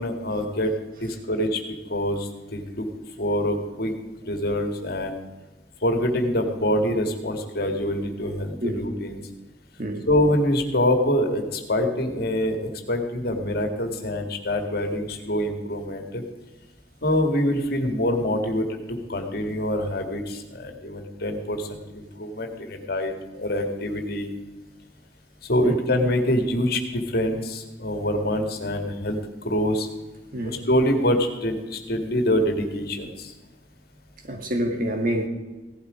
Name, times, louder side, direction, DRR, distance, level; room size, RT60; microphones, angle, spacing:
voice 1, 0.0-1.6 1.9-2.9 3.2-3.9 4.3-5.2 5.8-9.2 10.1-16.2 17.0-24.3 25.4-29.9 30.4-33.3, left 1 dB, 60° left, 4 dB, 2.1 m, -25 dB
voice 2, 30.3-30.6 34.3-35.3, right 1 dB, 55° right, 4 dB, 2.2 m, -27 dB
16.5 x 12.0 x 5.0 m, 1.2 s
head